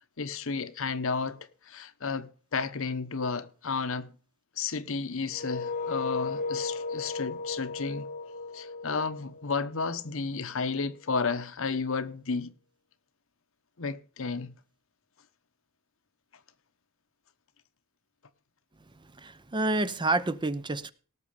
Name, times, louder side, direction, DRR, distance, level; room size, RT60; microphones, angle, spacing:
voice 1, 0.2-4.1 4.6-8.1 8.5-12.5 13.8-14.5, left 4 dB, 70° left, 1.0 m, -32 dB
sound 1, 5.3-10.1, left 4 dB, 35° left, 1.2 m, -35 dB
voice 2, 19.2-20.9, right 2 dB, 20° right, 0.7 m, -28 dB
18.0 x 7.0 x 5.1 m
head